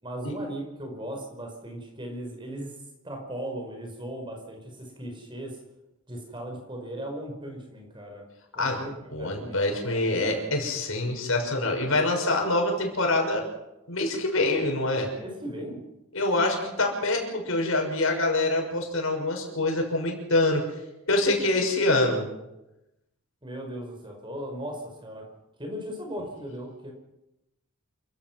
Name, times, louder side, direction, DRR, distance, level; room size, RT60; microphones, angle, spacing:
voice 1, 0.0-2.8 3.0-5.6 6.1-8.2 8.5-10.4 15.2-15.8 23.4-25.3 25.6-26.9, right 1 dB, 20° right, 3 dB, 5.2 m, -37 dB
voice 2, 9.1-13.4 13.9-15.1 16.1-20.6 21.1-22.3, left 2 dB, 75° left, 2 dB, 6.3 m, -25 dB
28.5 x 17.0 x 6.2 m, 0.92 s
head